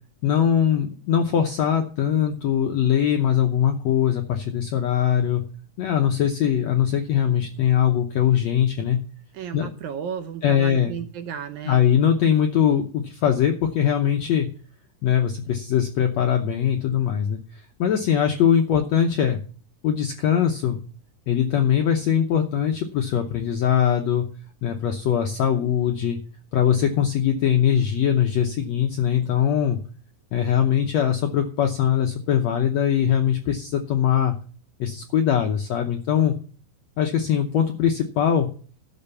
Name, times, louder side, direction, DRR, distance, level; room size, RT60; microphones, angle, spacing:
voice 1, 0.2-5.4 5.8-9.0 9.5-9.7 10.4-10.9 11.7-14.5 15.0-17.4 17.8-19.4 19.8-20.8 21.3-24.3 24.6-26.2 26.5-29.8 30.3-34.4 34.8-36.3 37.0-38.5, left 9 dB, 75° left, 4 dB, 1.6 m, -21 dB
voice 2, 9.3-11.8, right 8 dB, 80° right, 8 dB, 1.7 m, -33 dB
12.5 x 6.3 x 6.9 m, 0.41 s
omnidirectional pair, 4.2 m